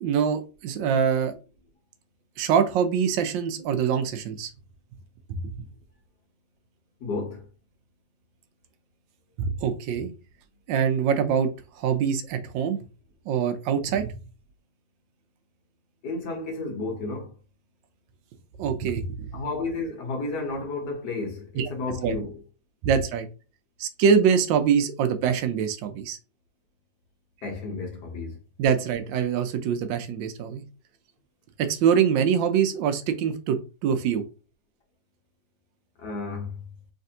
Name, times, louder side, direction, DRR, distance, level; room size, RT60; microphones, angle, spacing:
voice 1, 0.0-1.3 2.4-4.5 5.3-5.5 9.4-10.1 10.7-11.5 11.8-12.8 13.3-14.1 18.6-19.3 21.6-21.7 22.0-22.1 22.8-23.3 23.8-26.2 28.6-30.6 31.6-34.2, right 7 dB, 80° right, 1.3 m, -24 dB
voice 2, 7.0-7.4 16.0-17.3 19.3-22.4 27.4-28.4 36.0-36.6, left 3 dB, 65° left, 1.6 m, -32 dB
3.3 x 3.3 x 2.7 m
omnidirectional pair, 2.0 m